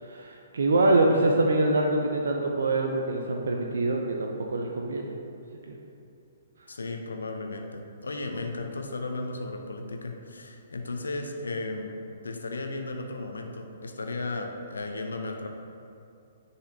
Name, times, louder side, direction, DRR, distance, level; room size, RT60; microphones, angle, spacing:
voice 1, 0.0-5.1 5.7-5.8, right 2 dB, 60° right, 1 dB, 0.6 m, -25 dB
voice 2, 6.7-11.9 12.2-15.5, left 2 dB, 70° left, 3 dB, 0.7 m, -35 dB
9.8 x 4.1 x 2.8 m, 2.6 s
figure-of-eight pair, 120°, 0 cm